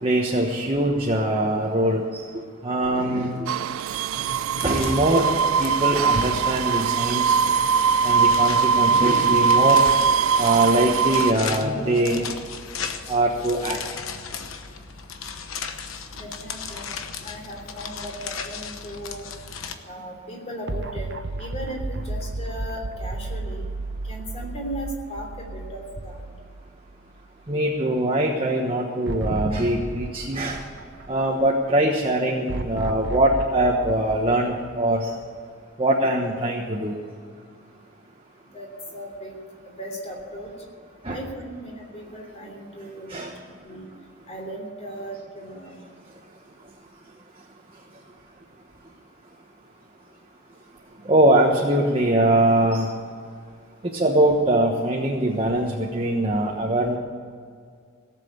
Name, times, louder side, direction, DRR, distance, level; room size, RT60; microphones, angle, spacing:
voice 1, 0.0-2.2 2.6-3.5 4.6-5.3 5.6-7.4 8.0-9.8 10.4-12.4 13.1-13.8 27.5-30.6 31.1-35.1 35.8-36.9 41.0-41.2 43.1-43.3 51.0-52.9 53.9-57.0, right 1 dB, 30° right, -1 dB, 1.3 m, -22 dB
sound 1, 3.3-19.8, left 6 dB, 85° left, 1.1 m, -37 dB
sound 2, 3.5-11.3, right 6 dB, 80° right, 0.3 m, -21 dB
voice 2, 16.2-16.9 17.2-19.3 19.8-21.1 21.4-23.6 24.1-26.2 38.5-38.7 38.9-39.3 39.8-40.5 41.1-43.2 43.6-43.9 44.3-45.7, equal, 30° left, 1 dB, 3.3 m, -36 dB
sound 3, 20.7-27.0 27.4-27.5 29.1-31.5 32.5-35.3, right 2 dB, 55° right, 0.9 m, -33 dB
17.5 x 7.6 x 8.7 m, 2.1 s
head